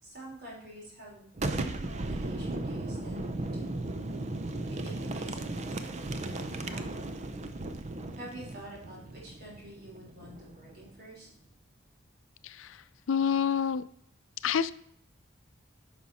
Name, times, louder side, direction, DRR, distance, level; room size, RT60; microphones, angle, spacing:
voice 1, 0.0-3.9 4.7-7.1 8.2-11.3, right 1 dB, 55° right, -4 dB, 4.3 m, -48 dB
Boom, 1.3-10.9, right 2 dB, 35° right, 0.6 m, -36 dB
voice 2, 12.4-12.8 13.1-13.8 14.4-14.7, left 7 dB, 75° left, 15 dB, 0.4 m, -27 dB
10.5 x 5.9 x 4.2 m, 0.66 s
head